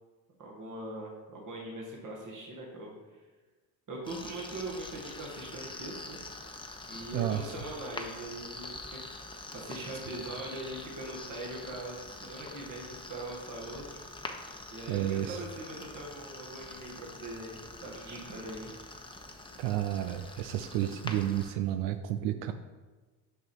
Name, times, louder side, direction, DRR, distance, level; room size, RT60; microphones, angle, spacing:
voice 1, 0.4-3.2 3.9-6.2 6.9-9.3 9.5-14.0 14.7-17.5 17.8-18.7, right 1 dB, 40° right, -2 dB, 1.8 m, -41 dB
sound 1, 4.1-21.5, left 2 dB, 10° left, 0.9 m, -45 dB
voice 2, 7.1-7.5 14.9-15.4 19.6-22.5, right 12 dB, 85° right, 9 dB, 0.5 m, -31 dB
6.3 x 5.6 x 4.6 m, 1.3 s
supercardioid pair, 70°, 46 cm